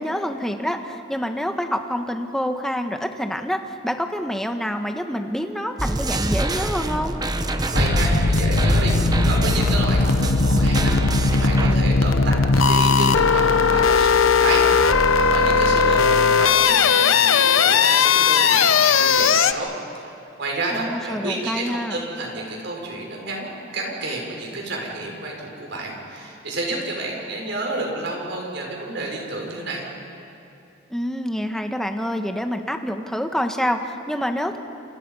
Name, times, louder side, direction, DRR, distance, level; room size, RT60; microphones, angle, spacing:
voice 1, 0.0-7.2 20.7-22.0 30.9-34.6, equal, ahead, 5 dB, 1.3 m, -27 dB
sound 1, 5.8-11.8, right 1 dB, 20° right, 0.9 m, -25 dB
sound 2, 7.7-19.5, left 5 dB, 80° left, 0.9 m, -18 dB
voice 2, 7.7-9.0 9.3-10.9 11.3-19.7 20.0-29.8, right 2 dB, 60° right, -1 dB, 5.8 m, -30 dB
28.5 x 28.5 x 5.6 m, 2.8 s
head